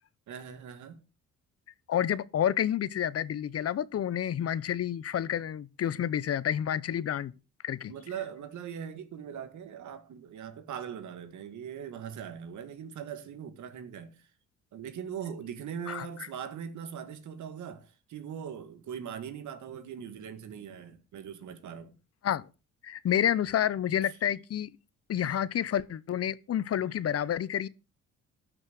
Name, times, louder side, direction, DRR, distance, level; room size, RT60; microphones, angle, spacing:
voice 1, 0.3-1.0 7.9-14.3 14.7-21.9 24.0-24.2, right 8 dB, 70° right, 1.8 m, -41 dB
voice 2, 1.9-7.3 7.6-7.9 15.9-16.1 22.2-22.5 22.8-24.7 25.1-27.7, left 10 dB, 50° left, 0.8 m, -29 dB
12.5 x 6.4 x 6.4 m
cardioid pair, 90°, 30 cm